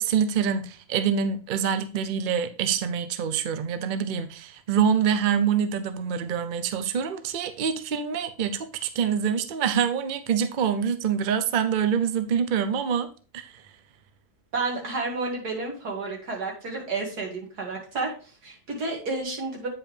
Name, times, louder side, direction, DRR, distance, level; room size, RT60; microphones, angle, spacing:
voice 1, 0.0-13.1 13.3-13.5, right 7 dB, 50° right, 0.6 m, -25 dB
voice 2, 14.5-19.7, right 3 dB, 90° right, 2.6 m, -31 dB
8.8 x 5.2 x 3.3 m
omnidirectional pair, 1.6 m